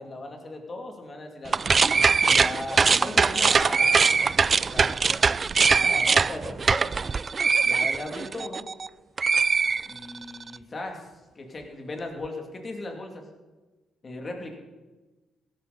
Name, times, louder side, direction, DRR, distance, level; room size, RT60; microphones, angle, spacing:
voice 1, 0.0-1.7 2.2-5.2 5.8-6.8 7.6-8.7 9.8-11.1 11.3-13.2 14.0-14.6, left 2 dB, 35° left, 2 dB, 2.7 m, -37 dB
sound 1, 1.5-8.9 9.2-10.4, right 5 dB, 35° right, 0.3 m, -22 dB
Gong, 3.6-5.6, left 3 dB, 85° left, 4.8 m, -48 dB
16.5 x 13.0 x 4.2 m, 1.2 s
cardioid pair, 90°, 0 cm